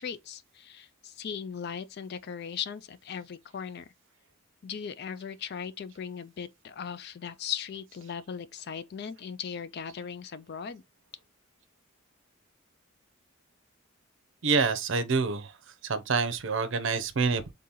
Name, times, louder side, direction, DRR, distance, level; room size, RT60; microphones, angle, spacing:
voice 1, 0.0-3.9 4.6-10.8, left 7 dB, 50° left, 0.4 m, -38 dB
voice 2, 14.4-15.6 15.8-17.5, right 4 dB, 60° right, 0.6 m, -27 dB
3.7 x 2.8 x 3.7 m
head